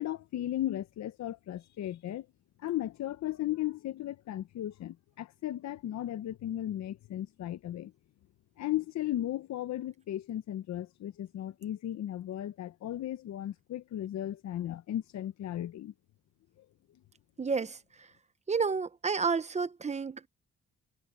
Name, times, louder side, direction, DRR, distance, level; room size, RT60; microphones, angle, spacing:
voice 1, 0.0-2.3 2.6-7.9 8.6-15.9 16.6-16.7, left 13 dB, 65° left, 0.8 m, -36 dB
voice 2, 17.4-18.1 18.5-20.3, right 5 dB, 25° right, 0.8 m, -31 dB
cardioid pair, 90°, 30 cm